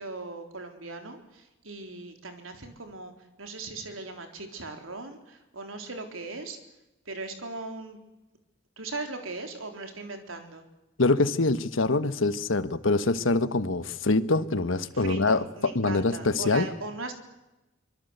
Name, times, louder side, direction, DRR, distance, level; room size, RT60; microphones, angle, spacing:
voice 1, 0.0-3.1 3.4-6.6 7.1-8.0 8.8-10.7 14.9-17.1, right 3 dB, 85° right, 5 dB, 3.8 m, -38 dB
voice 2, 11.0-15.4 15.7-16.7, left 3 dB, 75° left, 13 dB, 1.3 m, -24 dB
25.0 x 23.0 x 8.1 m, 0.98 s
head